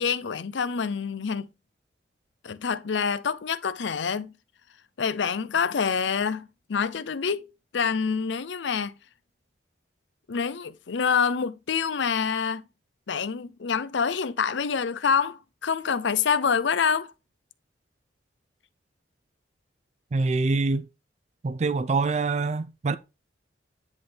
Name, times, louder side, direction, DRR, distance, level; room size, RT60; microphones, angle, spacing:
voice 1, 0.0-1.5 2.4-4.3 5.0-8.9 10.3-12.6 13.1-17.1, left 6 dB, 75° left, 0.5 m, -26 dB
voice 2, 20.1-20.9 21.4-23.0, right 3 dB, 35° right, 0.4 m, -25 dB
9.8 x 4.0 x 3.4 m
head